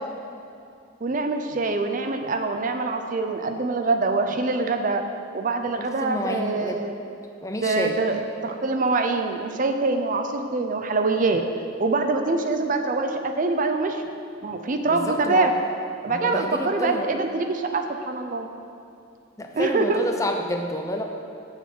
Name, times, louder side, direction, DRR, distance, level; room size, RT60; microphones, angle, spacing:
voice 1, 1.0-5.0 5.3-6.9 7.6-11.4 11.8-14.0 14.4-15.5 16.0-18.5 19.5-20.0, right 3 dB, 40° right, 6 dB, 0.5 m, -24 dB
voice 2, 5.8-6.8 7.4-8.2 14.9-15.5 16.1-17.2 19.4-21.0, left 1 dB, 15° left, 3 dB, 0.6 m, -29 dB
7.1 x 6.3 x 7.5 m, 2.5 s
head